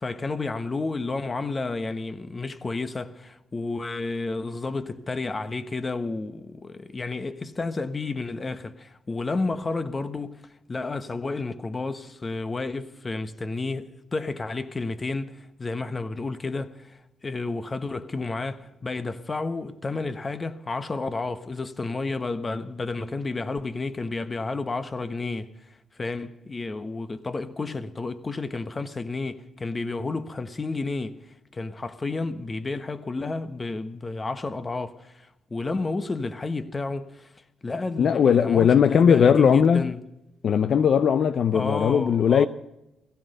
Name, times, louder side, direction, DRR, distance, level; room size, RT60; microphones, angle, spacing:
voice 1, 0.0-10.4 10.7-25.5 26.0-31.2 31.5-37.3 37.6-40.0 41.5-42.5, left 3 dB, 30° left, 1.3 m, -31 dB
voice 2, 38.0-39.9 40.4-42.5, left 7 dB, 60° left, 0.5 m, -19 dB
17.0 x 15.5 x 5.4 m
supercardioid pair, 70°, 0 cm